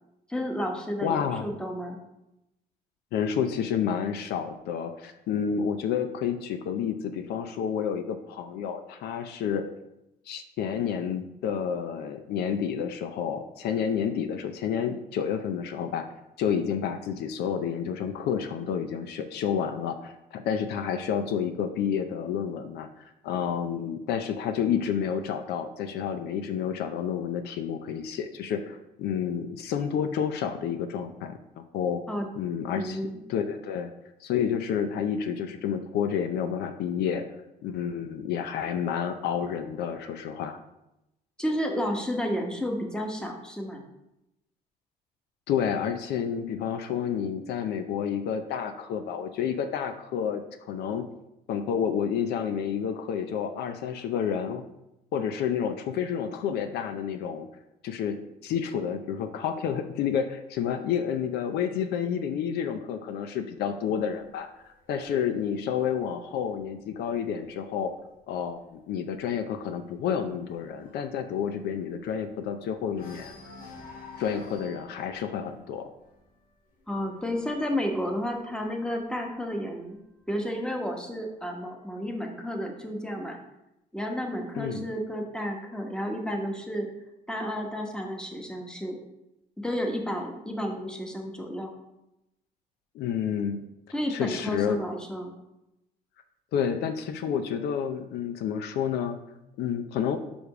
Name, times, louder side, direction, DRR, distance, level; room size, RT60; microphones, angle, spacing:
voice 1, 0.3-2.0 32.1-32.3 32.8-33.1 41.4-43.8 76.9-80.0 80.3-83.4 83.9-86.9 87.3-89.0 89.6-91.7 93.9-95.3, equal, 5° left, 2 dB, 1.1 m, -31 dB
voice 2, 1.0-1.5 3.1-9.6 10.3-16.1 16.4-22.9 23.2-32.0 32.4-33.0 33.3-33.9 34.2-37.3 37.6-40.6 45.5-50.4 50.7-51.0 51.5-54.7 55.1-57.5 57.8-64.5 64.9-67.9 68.3-73.3 74.2-75.9 84.5-84.9 92.9-93.6 94.1-94.8 96.5-99.2 99.6-100.2, left 8 dB, 75° left, 8 dB, 0.6 m, -30 dB
sound 1, 64.1-67.8 68.2-68.5 68.8-68.9 69.3-72.5 72.9-79.4 80.3-81.3, left 3 dB, 60° left, 1.6 m, -51 dB
5.2 x 5.0 x 4.8 m, 0.90 s
cardioid pair, 110°, 17 cm